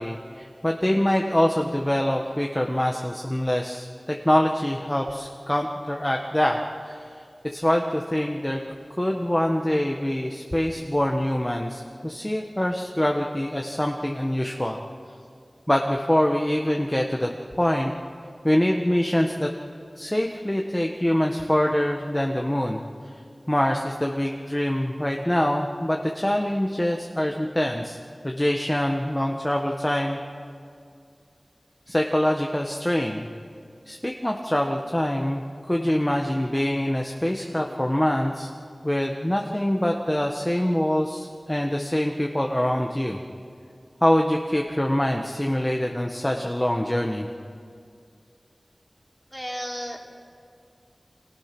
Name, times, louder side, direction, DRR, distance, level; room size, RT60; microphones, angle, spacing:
voice 1, 0.0-7.1 7.4-8.6 9.0-14.8 15.7-17.3 17.6-17.9 18.4-19.5 20.0-22.8 23.5-28.0 28.2-30.2 31.9-33.3 33.9-38.5 38.8-43.2 44.0-47.3, left 1 dB, 20° left, 1 dB, 1.5 m, -24 dB
voice 2, 49.3-50.0, equal, 5° right, -1 dB, 3.8 m, -33 dB
29.0 x 25.5 x 6.2 m, 2.4 s
wide cardioid pair, 50°, 0 cm